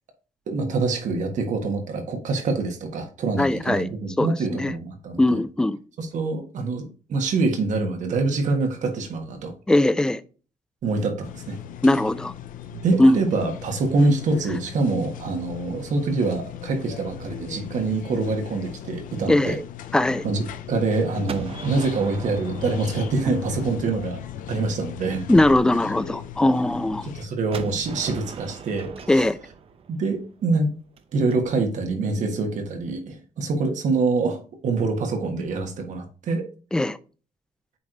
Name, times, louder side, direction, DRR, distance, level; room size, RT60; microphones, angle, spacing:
voice 1, 0.5-5.4 6.0-6.8 7.1-9.5 10.8-11.6 12.7-19.6 20.2-25.2 27.0-29.2 29.9-30.7 31.1-36.5, right 3 dB, 65° right, 1.5 m, -25 dB
voice 2, 3.4-3.9 4.2-4.7 5.2-5.8 9.7-10.2 11.8-12.3 13.0-13.2 19.3-19.6 19.9-20.2 25.3-27.1 29.1-29.4 36.7-37.0, left 1 dB, 5° left, 0.3 m, -20 dB
sound 1, 11.2-27.2, left 10 dB, 85° left, 0.5 m, -37 dB
Gunshot gunfire, 21.3-24.1 27.5-31.3, right 6 dB, 45° right, 0.7 m, -39 dB
8.5 x 3.2 x 3.8 m
cardioid pair, 140°, 13 cm